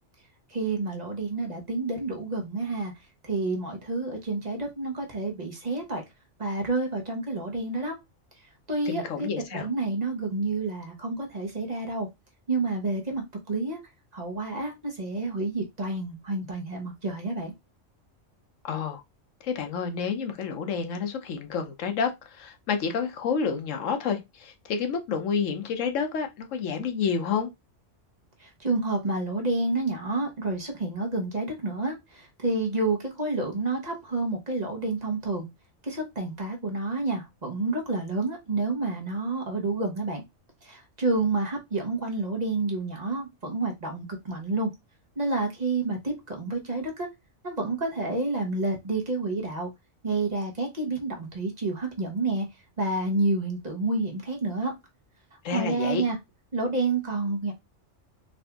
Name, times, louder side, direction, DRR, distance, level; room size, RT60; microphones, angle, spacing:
voice 1, 0.5-2.9 3.2-6.0 6.4-7.9 8.7-12.1 12.5-13.8 14.1-17.5 28.4-35.4 35.8-40.2 40.6-44.7 45.2-47.1 47.4-49.7 50.0-52.5 52.8-54.7 55.5-56.2 56.5-57.5, right 2 dB, 35° right, 1.0 m, -29 dB
voice 2, 8.9-9.7 18.6-19.0 19.4-27.5 55.4-56.0, left 6 dB, 85° left, 1.1 m, -29 dB
3.8 x 2.6 x 3.4 m
omnidirectional pair, 1.3 m